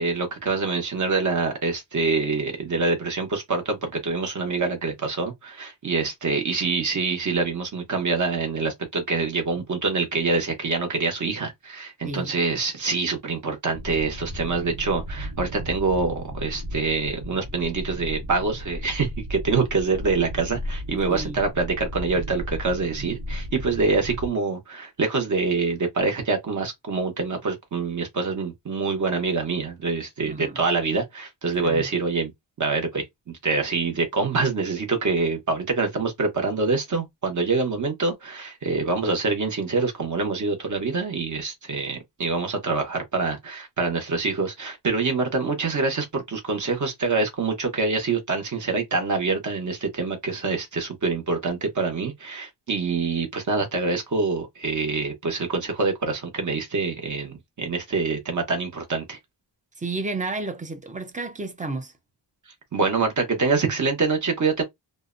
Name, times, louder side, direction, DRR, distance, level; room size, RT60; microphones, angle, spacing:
voice 1, 0.0-32.3 32.6-59.2 62.7-64.6, right 4 dB, 40° right, 0.8 m, -25 dB
voice 2, 12.0-12.4 21.0-21.4 30.3-30.6 31.5-31.9 59.8-61.9, right 3 dB, 20° right, 0.4 m, -32 dB
sound 1, 13.7-24.3, equal, 75° right, 0.9 m, -35 dB
2.7 x 2.1 x 2.4 m
wide cardioid pair, 155°, 45 cm